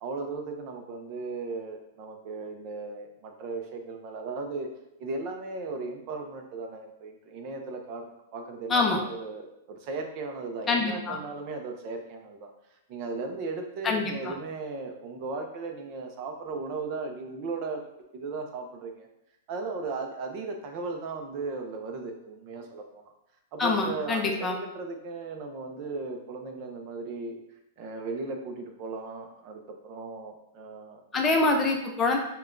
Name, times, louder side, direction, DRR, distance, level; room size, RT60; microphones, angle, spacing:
voice 1, 0.0-4.7 5.0-12.5 12.9-19.1 19.5-23.0 23.5-27.4 27.8-31.0, right 3 dB, 40° right, 4 dB, 0.6 m, -36 dB
voice 2, 8.7-9.0 10.7-11.2 13.8-14.3 23.6-24.6 31.1-32.2, left 3 dB, 15° left, 1 dB, 0.5 m, -25 dB
5.5 x 2.3 x 2.5 m, 0.84 s
supercardioid pair, 160°, 0 cm